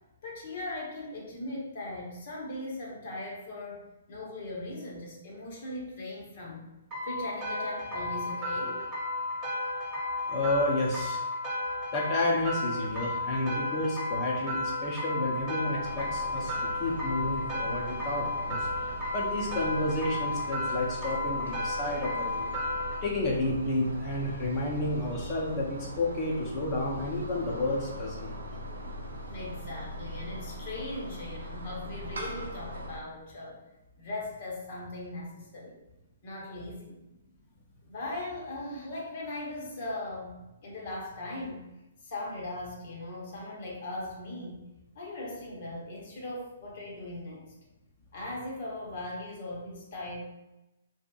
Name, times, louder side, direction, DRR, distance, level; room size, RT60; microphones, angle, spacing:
voice 1, 0.2-3.8 4.1-6.7 7.0-8.8 29.3-33.6 34.0-35.8 36.2-36.9 37.9-40.3 40.6-41.7 42.0-44.6 44.9-47.4 48.1-50.2, left 2 dB, 55° left, -3 dB, 0.8 m, -39 dB
sound 1, 6.9-23.0, left 2 dB, 25° right, 0.9 m, -33 dB
voice 2, 10.3-11.3 11.9-18.7 19.1-22.5 23.0-28.4, left 2 dB, 35° left, -3 dB, 0.5 m, -31 dB
sound 2, 15.8-33.0, equal, 80° right, 0.5 m, -41 dB
2.7 x 2.5 x 2.3 m, 0.97 s
hypercardioid pair, 130°, 0 cm